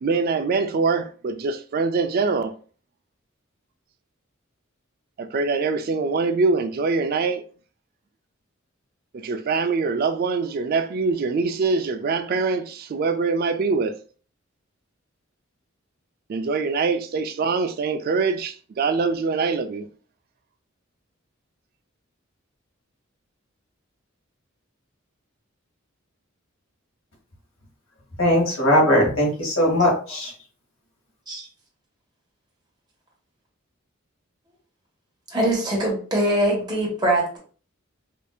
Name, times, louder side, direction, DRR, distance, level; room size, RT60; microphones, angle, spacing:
voice 1, 0.0-2.6 5.2-7.5 9.1-14.0 16.3-19.9, right 4 dB, 45° right, 0.3 m, -24 dB
voice 2, 28.2-30.3, equal, 80° left, 1.8 m, -19 dB
voice 3, 35.3-37.4, right 1 dB, 20° right, 1.4 m, -22 dB
5.0 x 2.6 x 2.3 m
head